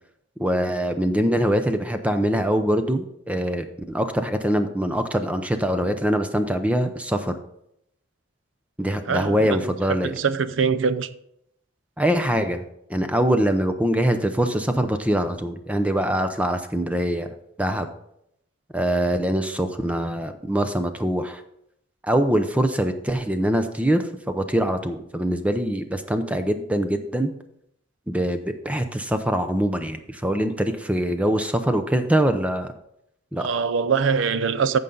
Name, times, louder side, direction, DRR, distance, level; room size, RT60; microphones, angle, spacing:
voice 1, 0.4-7.4 8.8-10.1 12.0-12.6 12.9-17.3 17.6-17.9 18.7-21.4 22.0-24.0 24.3-27.3 28.1-32.7 33.3-33.5, equal, 5° right, 0.6 m, -23 dB
voice 2, 9.1-9.7 10.0-11.1 33.4-34.8, right 5 dB, 75° right, 0.5 m, -23 dB
14.0 x 5.4 x 3.8 m
head